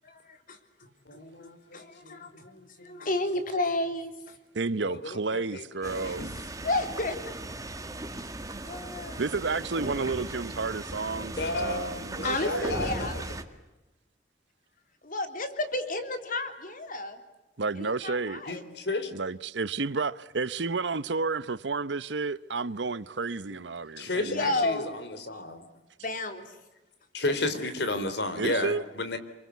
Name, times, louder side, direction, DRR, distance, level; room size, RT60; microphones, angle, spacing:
voice 1, 0.0-2.5 2.8-4.4 6.6-7.3 8.6-9.3 12.2-13.2 15.0-17.2 17.8-18.6 24.1-24.9 25.3-25.4 26.0-26.6 27.3-27.4, left 2 dB, 50° left, 3.6 m, -32 dB
voice 2, 1.1-3.1 4.8-6.3 11.3-13.2 18.5-19.1 24.0-25.6 27.1-29.2, left 2 dB, 65° left, 3.5 m, -33 dB
voice 3, 4.5-6.4 9.2-12.7 17.6-18.4 19.1-24.6 28.4-28.8, right 4 dB, 75° right, 0.9 m, -31 dB
sound 1, 5.8-13.4, right 1 dB, 20° right, 2.0 m, -38 dB
28.5 x 24.0 x 8.3 m
head